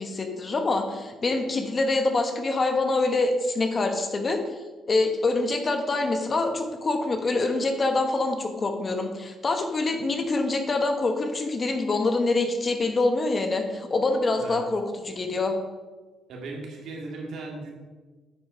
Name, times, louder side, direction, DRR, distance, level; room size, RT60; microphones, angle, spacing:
voice 1, 0.0-4.4 4.9-15.6, left 3 dB, 35° left, 5 dB, 1.2 m, -25 dB
voice 2, 16.3-17.7, right 3 dB, 80° right, -1 dB, 2.4 m, -37 dB
8.7 x 6.3 x 5.2 m, 1.3 s
cardioid pair, 90°, 0 cm